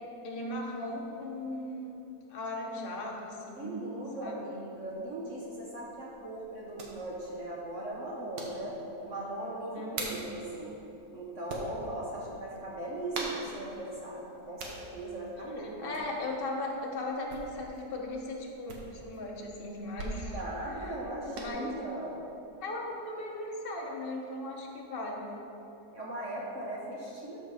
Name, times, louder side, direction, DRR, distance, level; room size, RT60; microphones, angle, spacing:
voice 1, 0.2-2.0 2.3-3.7 4.2-4.4 9.7-10.2 15.6-20.4 20.7-20.9 21.4-21.8 22.6-25.3, left 1 dB, 35° left, -1 dB, 1.1 m, -37 dB
voice 2, 3.6-8.8 9.0-10.8 11.1-15.9 20.2-22.2 25.9-27.4, right 1 dB, 50° right, -4 dB, 1.4 m, -38 dB
sound 1, 4.8-21.5, right 2 dB, 85° right, 1.8 m, -45 dB
13.5 x 4.6 x 4.9 m, 2.9 s
omnidirectional pair, 1.8 m